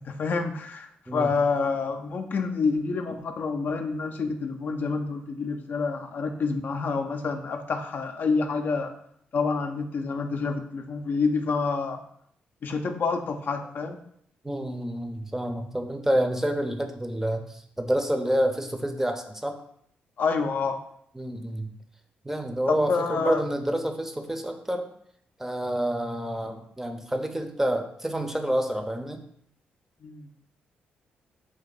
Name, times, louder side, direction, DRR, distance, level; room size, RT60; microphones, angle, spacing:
voice 1, 0.0-8.9 9.3-12.0 12.6-14.0 20.2-20.8 22.7-23.4 30.0-30.3, left 4 dB, 60° left, 5 dB, 0.4 m, -28 dB
voice 2, 14.4-19.6 21.2-21.7 22.2-24.9 25.4-29.2, right 1 dB, 10° right, 5 dB, 0.5 m, -28 dB
3.3 x 2.6 x 3.9 m, 0.67 s
supercardioid pair, 55°, 4 cm